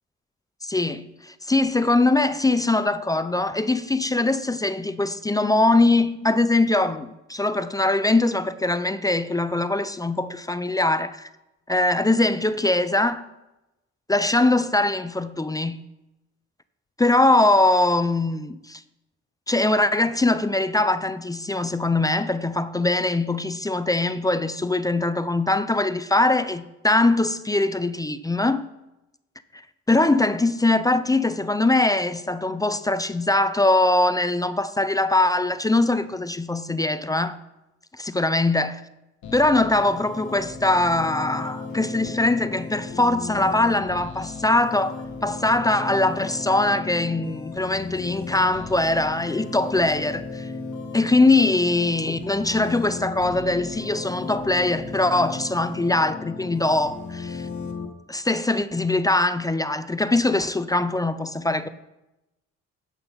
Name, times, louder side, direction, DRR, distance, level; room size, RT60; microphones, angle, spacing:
voice 1, 0.6-11.3 11.7-13.3 14.1-15.8 17.0-18.8 19.5-28.7 29.9-37.4 38.0-38.8 39.3-44.9 45.2-50.5 50.9-57.5 58.1-61.7, left 2 dB, 10° left, 0.4 m, -22 dB
sound 1, 39.2-57.9, left 4 dB, 70° left, 1.3 m, -35 dB
8.7 x 5.9 x 5.4 m
cardioid pair, 90°, 30 cm